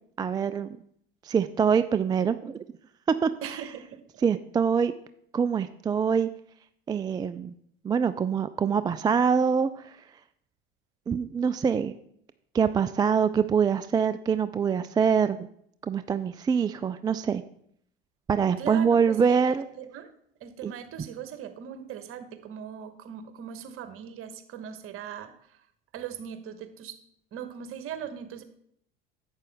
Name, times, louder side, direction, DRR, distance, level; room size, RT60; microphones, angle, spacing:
voice 1, 0.2-0.8 1.2-2.6 3.2-3.6 4.2-4.9 5.3-6.3 6.9-7.5 7.8-10.0 11.1-11.9 12.5-15.5 15.8-17.4 18.3-19.7 20.6-20.7, right 6 dB, 15° right, 12 dB, 0.3 m, -25 dB
voice 2, 3.4-4.2 18.6-20.1 20.4-25.6 25.9-27.0 27.3-28.4, right 9 dB, 45° right, 10 dB, 1.2 m, -40 dB
11.0 x 8.0 x 3.5 m, 0.68 s
hypercardioid pair, 70°, 29 cm